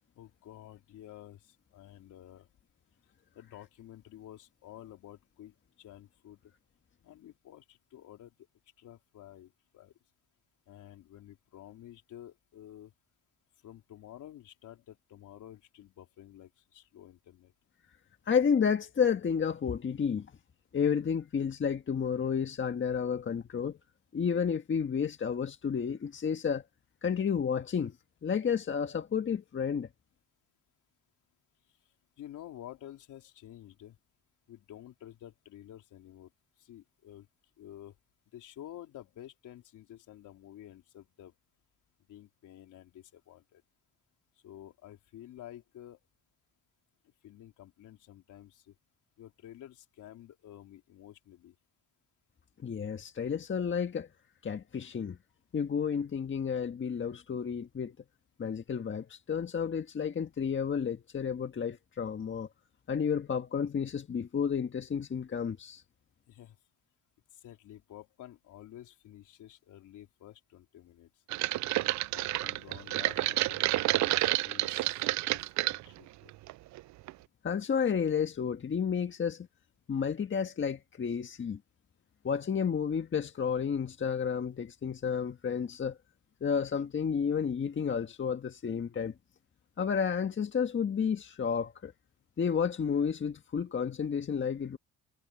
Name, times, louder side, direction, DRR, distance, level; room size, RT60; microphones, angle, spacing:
voice 1, 0.2-2.5 3.3-6.4 7.0-8.3 8.8-9.9 10.7-12.9 13.6-17.5 32.2-34.0 34.5-36.3 36.6-37.3 37.6-37.9 38.3-41.3 42.1-43.6 44.4-46.0 47.2-48.7 49.2-51.5 66.3-66.6 67.4-71.1 71.8-76.3, left 12 dB, 80° left, 4.0 m, -51 dB
voice 2, 18.3-20.3 20.7-23.8 24.1-26.6 27.0-27.9 28.2-29.9 52.6-54.1 54.4-55.2 55.5-57.9 58.4-62.5 62.9-65.8 77.4-79.5 79.9-81.6 82.2-86.0 86.4-89.1 89.8-91.9 92.4-94.8, left 7 dB, 40° left, 1.6 m, -31 dB
sound 1, 71.3-75.8 76.3-76.8 77.1-77.2, right 17 dB, 70° right, 0.4 m, -29 dB
cardioid pair, 90°, 30 cm